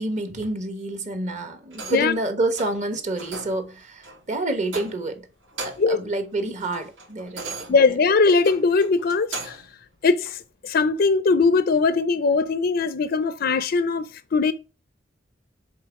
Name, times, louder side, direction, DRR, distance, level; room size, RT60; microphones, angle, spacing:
voice 1, 0.0-5.3 5.6-7.7, right 2 dB, 40° right, 1.2 m, -28 dB
sound 1, 1.7-2.2 2.6-2.8 3.2-3.6 4.0-4.2 4.7-5.2 5.4-6.0 6.4-9.7 10.2-10.4, right 3 dB, 90° right, 2.7 m, -38 dB
voice 2, 5.8-6.1 7.7-9.6 10.0-14.5, left 4 dB, 55° left, 0.4 m, -20 dB
7.6 x 3.8 x 4.8 m
head